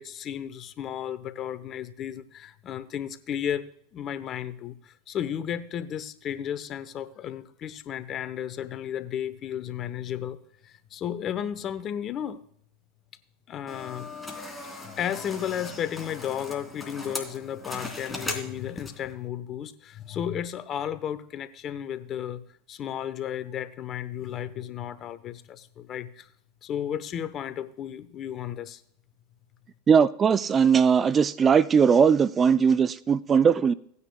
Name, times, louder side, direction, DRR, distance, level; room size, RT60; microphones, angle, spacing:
voice 1, 0.0-10.4 10.6-12.4 13.5-14.1 14.7-22.4 22.7-26.3 26.6-28.8, left 9 dB, 40° left, 0.8 m, -34 dB
sound 1, 13.7-19.1, left 2 dB, 5° left, 2.9 m, -38 dB
voice 2, 29.9-33.7, right 6 dB, 30° right, 0.4 m, -20 dB
17.0 x 9.7 x 2.3 m
hypercardioid pair, 95°, 0 cm